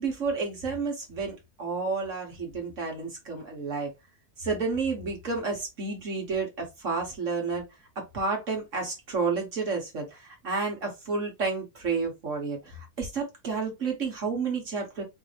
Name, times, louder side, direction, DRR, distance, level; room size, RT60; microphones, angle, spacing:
voice 1, 0.0-3.9 4.4-7.6 7.9-15.0, right 4 dB, 55° right, 1.5 m, -31 dB
4.5 x 2.7 x 3.3 m
omnidirectional pair, 1.6 m